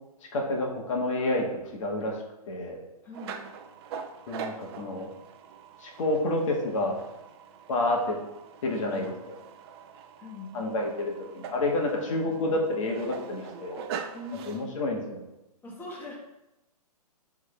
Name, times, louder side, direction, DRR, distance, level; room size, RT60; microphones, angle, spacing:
voice 1, 0.3-1.5 1.7-2.2 2.5-2.8 4.3-5.1 5.8-7.0 7.7-8.2 8.6-9.1 10.5-13.9 14.4-15.2, left 2 dB, 55° left, 0 dB, 1.7 m, -29 dB
voice 2, 3.0-3.4 10.2-10.6 14.1-14.9 15.6-16.2, left 1 dB, 10° left, -3 dB, 1.4 m, -41 dB
sound 1, 3.1-14.7, right 7 dB, 40° right, 0.7 m, -43 dB
9.4 x 3.8 x 3.4 m, 0.95 s
hypercardioid pair, 130°, 20 cm